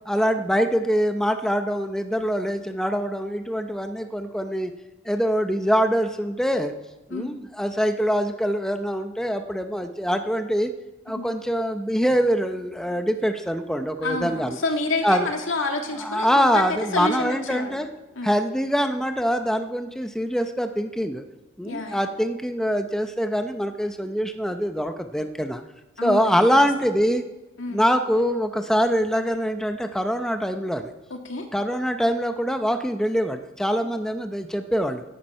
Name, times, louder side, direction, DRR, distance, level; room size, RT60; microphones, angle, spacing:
voice 1, 0.1-4.7 5.0-6.7 7.1-10.7 11.1-14.6 15.0-15.3 16.0-17.9 18.2-21.2 21.6-25.6 26.0-27.2 27.7-30.9 31.5-35.0, equal, 5° left, 6 dB, 0.7 m, -24 dB
voice 2, 14.0-16.7 16.9-17.8 18.2-18.4 21.6-22.1 26.0-26.7 27.6-27.8 31.1-31.5, left 2 dB, 85° left, 3 dB, 2.2 m, -29 dB
16.5 x 10.5 x 5.6 m, 1.1 s
head